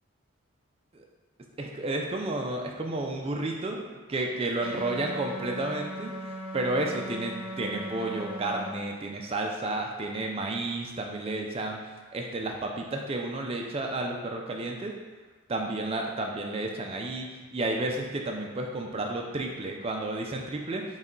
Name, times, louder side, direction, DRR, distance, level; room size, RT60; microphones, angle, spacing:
voice 1, 1.6-11.8 12.1-15.0 15.5-20.8, right 2 dB, 25° right, 1 dB, 0.3 m, -32 dB
sound 1, 4.6-8.7, equal, 85° right, 0.6 m, -38 dB
4.0 x 2.2 x 3.7 m, 1.3 s
head